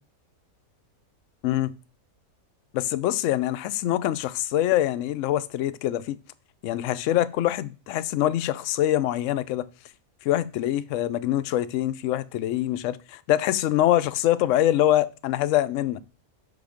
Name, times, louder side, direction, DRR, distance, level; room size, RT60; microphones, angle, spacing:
voice 1, 1.4-1.7 2.7-6.2 6.6-9.7 10.2-16.0, left 13 dB, 65° left, 0.8 m, -24 dB
5.9 x 5.6 x 5.0 m
omnidirectional pair, 1.6 m